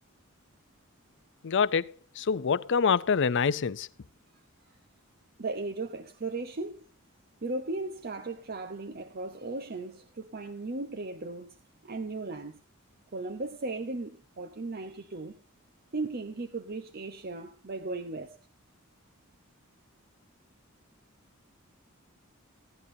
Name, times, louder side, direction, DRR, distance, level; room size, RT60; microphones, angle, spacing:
voice 1, 1.4-3.9, left 6 dB, 60° left, 0.5 m, -26 dB
voice 2, 5.4-6.8 7.4-11.5 11.8-12.6 13.1-15.3 15.9-18.4, right 3 dB, 45° right, 0.8 m, -36 dB
16.5 x 11.0 x 2.7 m
head